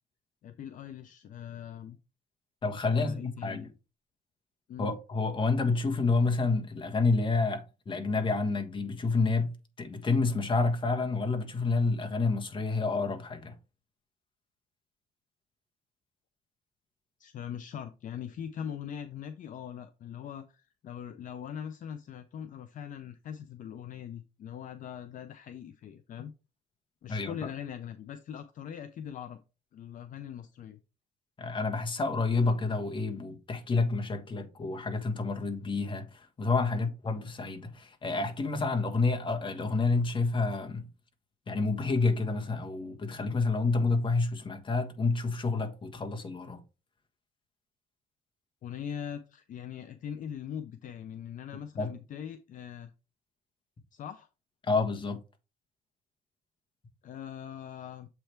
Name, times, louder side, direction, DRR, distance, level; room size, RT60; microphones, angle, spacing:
voice 1, 0.4-2.0 2.9-3.7 4.7-4.9 17.2-26.3 27.0-29.4 29.7-30.8 36.7-36.9 48.6-52.9 53.9-54.3 57.0-58.1, left 9 dB, 50° left, 0.6 m, -41 dB
voice 2, 2.6-3.7 4.8-13.5 27.1-27.3 31.4-40.9 41.5-46.6 51.8-51.9 54.6-55.2, left 3 dB, 30° left, 1.3 m, -29 dB
7.6 x 3.4 x 4.5 m
cardioid pair, 110°, 17 cm